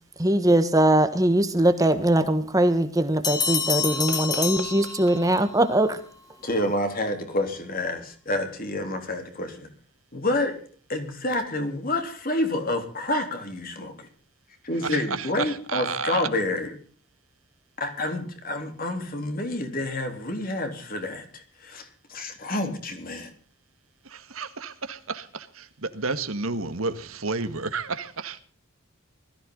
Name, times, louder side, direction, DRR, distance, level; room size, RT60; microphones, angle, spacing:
voice 1, 0.2-6.0, right 1 dB, 15° right, 10 dB, 1.4 m, -21 dB
sound 1, 3.2-5.5, left 6 dB, 20° left, 2.0 m, -28 dB
voice 2, 4.0-4.7 14.8-16.3 24.0-28.4, right 4 dB, 85° right, 10 dB, 1.8 m, -32 dB
voice 3, 6.4-9.7 10.1-10.6 10.9-14.1 14.6-16.7 17.8-23.3, left 1 dB, 45° left, 5 dB, 3.6 m, -28 dB
20.5 x 15.0 x 4.0 m, 0.42 s
head